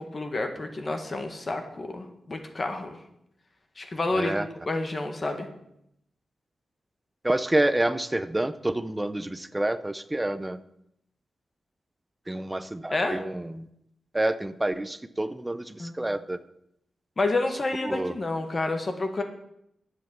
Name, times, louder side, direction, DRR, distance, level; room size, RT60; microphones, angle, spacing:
voice 1, 0.0-3.0 3.8-5.5 12.9-13.2 15.8-15.9 17.2-19.2, left 2 dB, 35° left, 5 dB, 1.7 m, -29 dB
voice 2, 4.1-4.5 7.2-10.6 12.3-13.7 14.1-16.4 17.8-18.1, right 1 dB, 15° right, 13 dB, 0.7 m, -28 dB
11.0 x 8.0 x 7.3 m, 0.77 s
wide cardioid pair, 105°, 0 cm